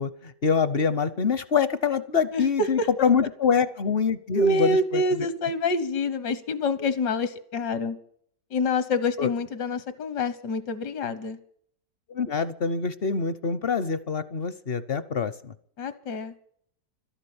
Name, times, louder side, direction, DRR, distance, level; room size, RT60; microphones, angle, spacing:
voice 1, 0.0-5.0 9.2-9.3 12.1-15.5, left 6 dB, 55° left, 15 dB, 0.7 m, -25 dB
voice 2, 2.3-2.9 4.3-8.0 8.5-11.4 15.8-16.3, left 2 dB, 80° left, 13 dB, 1.7 m, -26 dB
13.0 x 11.5 x 8.6 m, 0.64 s
omnidirectional pair, 1.8 m